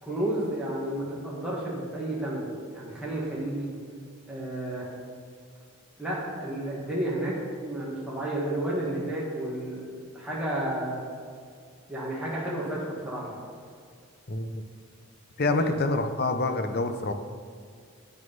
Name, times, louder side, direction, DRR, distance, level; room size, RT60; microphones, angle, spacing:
voice 1, 0.0-3.7 4.3-4.9 6.0-9.9 10.1-11.0 11.9-13.4 15.4-15.8, right 1 dB, 5° right, -7 dB, 1.6 m, -31 dB
voice 2, 14.3-14.6 15.4-17.1, left 2 dB, 45° left, 7 dB, 0.6 m, -27 dB
9.0 x 6.4 x 5.4 m, 2.1 s
head